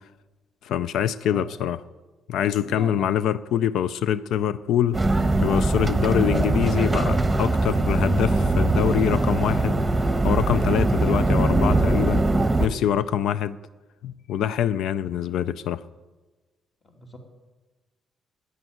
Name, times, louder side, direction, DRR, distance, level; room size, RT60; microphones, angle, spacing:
voice 1, 0.6-1.8 2.3-5.0 5.4-9.8 10.2-12.3 12.6-13.6 14.0-15.8, left 10 dB, 80° left, 0.4 m, -24 dB
voice 2, 1.2-1.5 2.6-3.1 16.8-17.2, equal, 35° left, 2.7 m, -40 dB
sound 1, 4.9-12.7, right 2 dB, 15° right, 1.1 m, -21 dB
10.5 x 10.0 x 9.3 m
cardioid pair, 90°, 0 cm